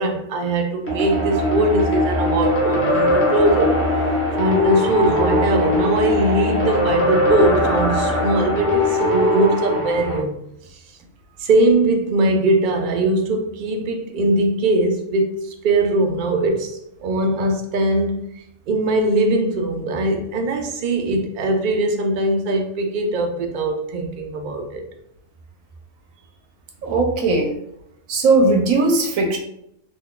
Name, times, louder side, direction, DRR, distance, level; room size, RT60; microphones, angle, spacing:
voice 1, 0.0-3.8 4.4-10.4 11.4-18.2 18.7-24.8, right 2 dB, 60° right, 0.5 m, -21 dB
sound 1, 0.9-10.2, left 1 dB, 10° left, 0.7 m, -20 dB
voice 2, 26.8-27.5 28.1-29.4, right 3 dB, 80° right, 1.0 m, -18 dB
2.9 x 2.2 x 3.6 m
omnidirectional pair, 1.4 m